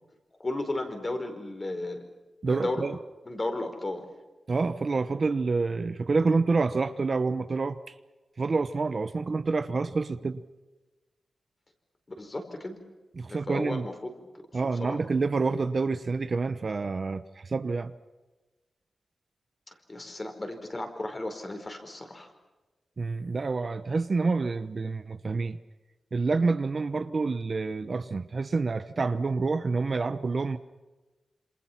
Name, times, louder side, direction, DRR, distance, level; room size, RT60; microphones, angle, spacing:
voice 1, 0.4-2.0 2.5-2.9 3.3-4.0 12.2-12.8 13.3-13.9 14.2-15.0 19.7-22.3, left 2 dB, 30° left, 5 dB, 4.7 m, -34 dB
voice 2, 2.4-3.0 4.5-7.8 8.4-10.4 13.2-13.9 14.5-17.9 23.0-25.6 26.1-30.6, right 4 dB, 45° right, 11 dB, 0.9 m, -28 dB
27.5 x 27.0 x 5.9 m, 1.2 s
wide cardioid pair, 115°, 0 cm